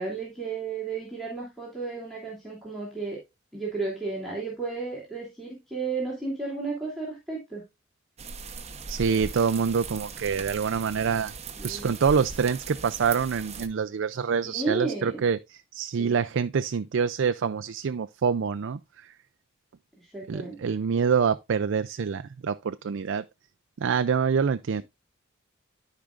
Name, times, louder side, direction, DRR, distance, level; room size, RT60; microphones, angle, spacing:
voice 1, 0.0-3.2 3.5-7.6 11.6-11.9 14.4-15.2 16.0-16.2 20.0-20.6, right 3 dB, ahead, 2.9 m, -33 dB
sound 1, 8.2-13.7, right 4 dB, 30° right, 0.9 m, -39 dB
voice 2, 8.9-11.3 11.6-19.1 20.3-23.2 23.8-24.8, right 6 dB, 65° right, 0.4 m, -26 dB
13.5 x 5.0 x 2.5 m
head